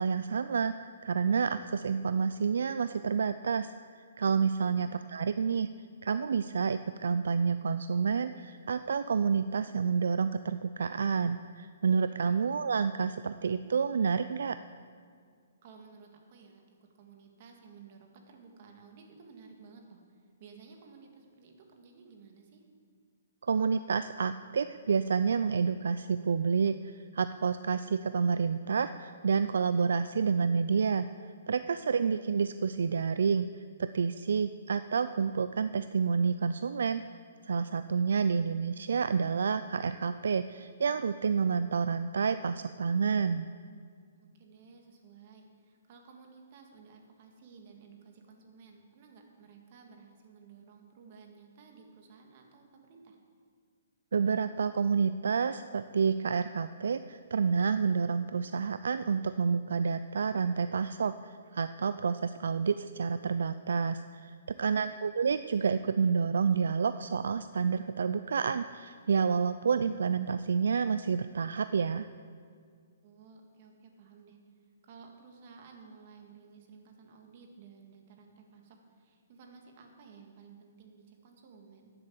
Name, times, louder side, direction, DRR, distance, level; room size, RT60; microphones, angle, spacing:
voice 1, 0.0-5.7 6.0-14.6 23.4-37.0 37.4-43.5 54.1-72.1, right 5 dB, 75° right, 12 dB, 0.3 m, -29 dB
voice 2, 4.6-4.9 11.9-12.5 15.6-22.6 31.9-32.3 44.2-53.2 64.6-65.1 73.0-74.4 74.8-81.9, right 5 dB, 45° right, 3 dB, 2.0 m, -55 dB
11.0 x 7.9 x 7.5 m, 2.1 s
hypercardioid pair, 150°, 0 cm